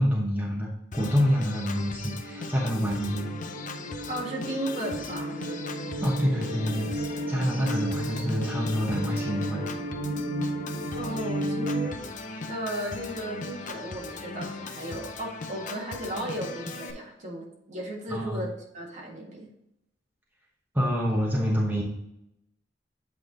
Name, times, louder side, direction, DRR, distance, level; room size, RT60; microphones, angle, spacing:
voice 1, 0.0-3.3 6.0-6.9 7.3-9.6 12.3-12.4 18.1-18.4 20.7-21.8, equal, 10° right, -4 dB, 1.1 m, -27 dB
Organ, 0.9-16.9, left 3 dB, 45° left, 0.6 m, -39 dB
sound 1, 1.7-11.9, right 1 dB, 75° right, 0.6 m, -34 dB
voice 2, 4.1-5.4 11.0-12.0 12.5-19.5, right 1 dB, 45° right, -2 dB, 1.7 m, -35 dB
8.1 x 3.4 x 3.9 m, 0.81 s
head